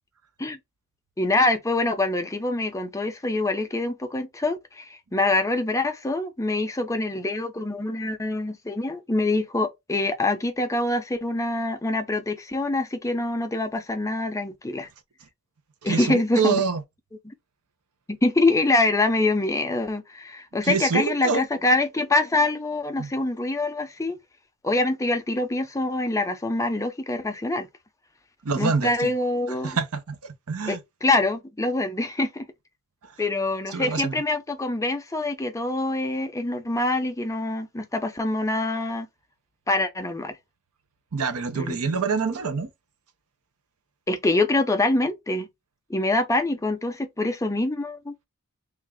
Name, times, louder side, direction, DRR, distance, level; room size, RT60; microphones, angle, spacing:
voice 1, 1.2-14.9 15.8-16.6 17.2-17.3 18.1-24.2 24.6-27.7 28.6-29.8 30.7-32.5 33.2-39.1 39.7-40.4 41.5-41.8 44.1-45.5 45.9-48.1, left 2 dB, 15° left, 0.5 m, -25 dB
voice 2, 15.8-16.8 20.6-21.5 23.0-23.1 28.4-29.1 29.6-30.8 33.7-34.2 41.1-42.7, right 5 dB, 75° right, 0.8 m, -26 dB
3.5 x 2.5 x 3.5 m
head